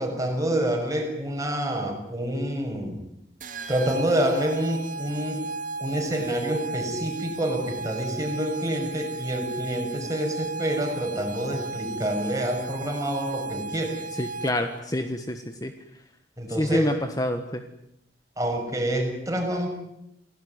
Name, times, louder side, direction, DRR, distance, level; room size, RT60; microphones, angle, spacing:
voice 1, 0.0-3.0 3.7-5.4 5.8-14.0 16.4-16.9 18.4-19.7, right 1 dB, 20° right, 2 dB, 6.6 m, -27 dB
sound 1, 3.4-14.8, right 3 dB, 50° right, 2.0 m, -35 dB
voice 2, 14.2-15.7 16.5-17.6, left 1 dB, 20° left, 7 dB, 1.5 m, -27 dB
28.5 x 18.0 x 9.7 m, 0.83 s
head